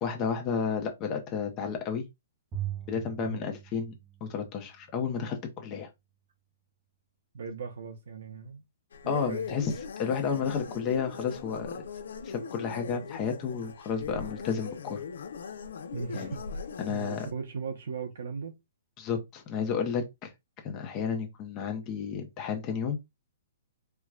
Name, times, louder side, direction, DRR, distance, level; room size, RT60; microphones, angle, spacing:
voice 1, 0.0-2.0 2.9-3.9 4.2-5.9 9.1-9.7 10.0-11.7 12.2-15.0 16.1-16.4 16.8-17.3 19.0-20.3 20.6-23.0, left 6 dB, 25° left, 0.7 m, -32 dB
Bowed string instrument, 2.5-4.9, right 12 dB, 15° right, 0.5 m, -40 dB
voice 2, 3.2-3.5 7.3-8.6 9.0-9.5 15.9-18.5, right 5 dB, 75° right, 0.7 m, -38 dB
sound 1, 8.9-17.3, left 6 dB, 85° left, 0.7 m, -40 dB
4.5 x 2.2 x 2.4 m
hypercardioid pair, 165°, 0 cm